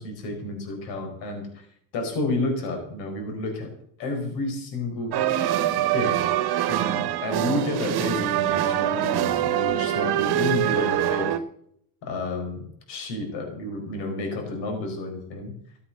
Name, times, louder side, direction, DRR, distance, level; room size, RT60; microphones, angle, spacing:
voice 1, 0.0-1.7 1.9-3.7 4.0-5.2 5.9-6.2 6.7-11.3 12.0-15.5, left 2 dB, 80° left, 4 dB, 4.7 m, -30 dB
sound 1, 5.1-11.4, right 12 dB, 60° right, 1.2 m, -24 dB
14.5 x 8.2 x 7.8 m, 0.69 s
supercardioid pair, 70°, 43 cm